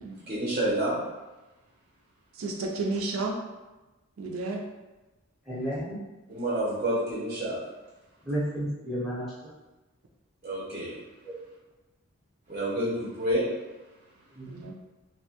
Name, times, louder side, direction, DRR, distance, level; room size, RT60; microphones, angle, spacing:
voice 1, 0.3-1.0 6.3-7.6 10.4-10.9 12.5-13.5, right 1 dB, 35° right, -8 dB, 0.6 m, -28 dB
voice 2, 2.4-3.3 4.2-4.6 14.5-14.7, right 3 dB, 75° right, 1 dB, 0.4 m, -32 dB
voice 3, 5.5-6.0 8.2-9.3 11.2-11.3 14.3-14.7, equal, ahead, -9 dB, 0.7 m, -32 dB
2.7 x 2.2 x 2.8 m, 1.1 s
head